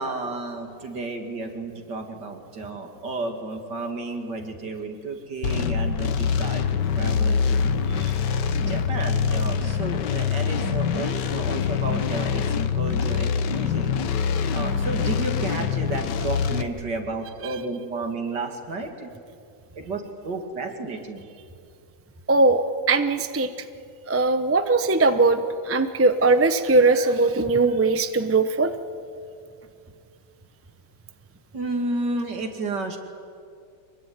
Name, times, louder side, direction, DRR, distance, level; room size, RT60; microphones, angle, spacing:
voice 1, 0.0-7.6 8.7-13.9 14.5-19.1 19.7-21.3 26.9-27.2 31.5-33.0, right 2 dB, 65° right, 4 dB, 3.2 m, -32 dB
sound 1, 5.4-16.6, left 6 dB, 70° left, 1.6 m, -24 dB
voice 2, 22.3-23.5 24.1-25.4 25.7-28.7, right 3 dB, 15° right, 9 dB, 0.5 m, -20 dB
25.0 x 21.5 x 9.7 m, 2.3 s
omnidirectional pair, 2.0 m